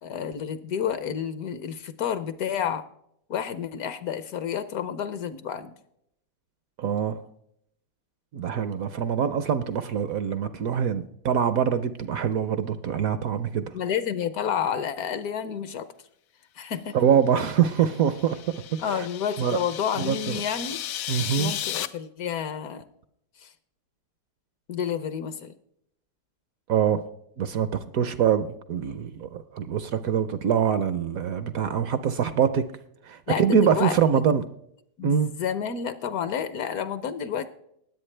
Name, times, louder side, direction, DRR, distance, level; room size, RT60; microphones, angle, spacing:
voice 1, 0.0-2.8 3.3-5.7 13.7-15.9 16.6-17.0 18.8-20.8 21.4-22.8 23.4-23.5 24.7-25.5 33.3-34.2 35.0-37.5, left 8 dB, 65° left, 1.1 m, -30 dB
voice 2, 6.8-7.2 8.3-13.7 16.9-19.1 19.4-19.6 20.0-20.4 21.1-21.5 26.7-27.0 27.4-32.6 33.0-34.4 35.0-35.3, right 8 dB, 65° right, 0.9 m, -24 dB
sound 1, 17.7-21.9, left 11 dB, 85° left, 1.3 m, -35 dB
20.0 x 8.2 x 3.2 m
omnidirectional pair, 1.9 m